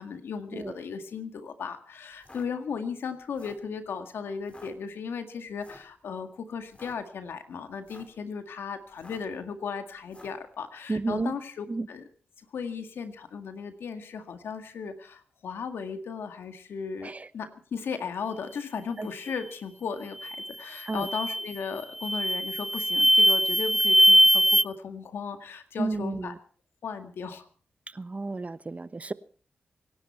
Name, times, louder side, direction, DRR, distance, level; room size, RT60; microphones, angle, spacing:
voice 1, 0.0-12.1 12.4-26.3 26.8-27.5, left 6 dB, 80° left, 1.9 m, -36 dB
sound 1, 2.1-2.5 3.2-3.7 4.4-4.7 5.6-5.9 6.6-7.0 7.7-8.2 8.9-9.4 10.1-10.4, left 2 dB, 30° left, 4.2 m, -50 dB
voice 2, 10.9-11.3 11.7-11.9 17.0-17.3 19.0-19.1 20.9-21.1 25.8-26.4 27.9-29.1, right 3 dB, 40° right, 0.9 m, -31 dB
sound 2, 20.2-20.5 21.0-21.5 22.0-24.6, equal, 5° right, 0.6 m, -21 dB
25.0 x 11.0 x 4.4 m
supercardioid pair, 40°, 4 cm